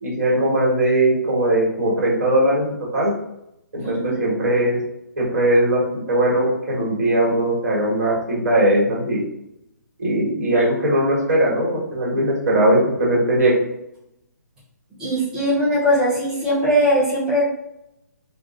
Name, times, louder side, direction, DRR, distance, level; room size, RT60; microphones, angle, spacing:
voice 1, 0.0-3.1 3.7-4.8 5.2-5.8 6.1-9.2 10.0-13.6, right 1 dB, 55° right, -4 dB, 1.2 m, -19 dB
voice 2, 3.8-4.2 15.0-17.4, equal, 5° right, -11 dB, 0.8 m, -20 dB
2.4 x 2.2 x 2.3 m, 0.83 s
figure-of-eight pair, 145°, 10 cm